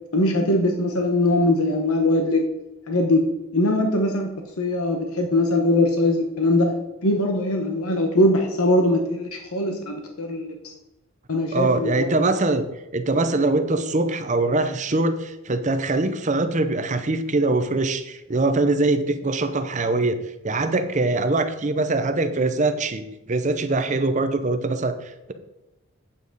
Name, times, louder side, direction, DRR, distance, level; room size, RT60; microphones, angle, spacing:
voice 1, 0.1-2.4 2.9-3.3 3.5-4.3 4.6-6.7 7.0-10.7 11.3-12.1, left 1 dB, 90° left, 4 dB, 1.0 m, -21 dB
voice 2, 11.5-12.7 12.9-20.2 20.4-25.3, right 2 dB, 35° right, 9 dB, 0.7 m, -23 dB
8.6 x 7.3 x 4.0 m, 0.99 s
head